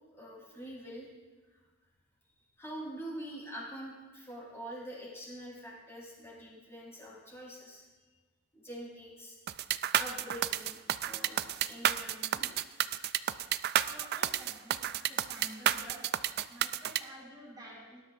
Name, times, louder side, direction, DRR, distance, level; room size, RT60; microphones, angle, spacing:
voice 1, 0.1-1.1 1.5-1.6 2.6-7.8 8.5-9.4 10.0-12.5 12.8-12.9, right 1 dB, 10° left, -5 dB, 4.0 m, -45 dB
sound 1, 9.5-17.0, right 11 dB, 45° right, 0.3 m, -30 dB
voice 2, 13.8-16.0 16.5-18.0, equal, 20° right, -6 dB, 4.0 m, -50 dB
18.5 x 11.5 x 2.5 m, 1.3 s
head